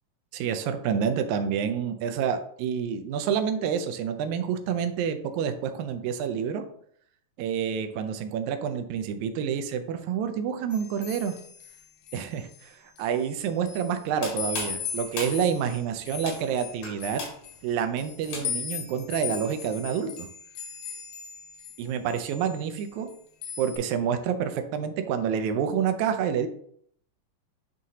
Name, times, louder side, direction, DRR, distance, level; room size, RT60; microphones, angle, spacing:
voice 1, 0.3-6.6 7.4-11.3 12.1-17.2 17.6-20.3 21.8-23.2 23.6-26.5, right 7 dB, 80° right, 7 dB, 1.8 m, -28 dB
sound 1, 10.7-12.6 13.0-14.0 14.4-21.8 22.1-23.1 23.4-23.8, left 7 dB, 90° left, 2.6 m, -38 dB
sound 2, 13.9-18.8, left 3 dB, 75° left, 3.2 m, -39 dB
9.3 x 3.7 x 2.8 m, 0.65 s
omnidirectional pair, 3.7 m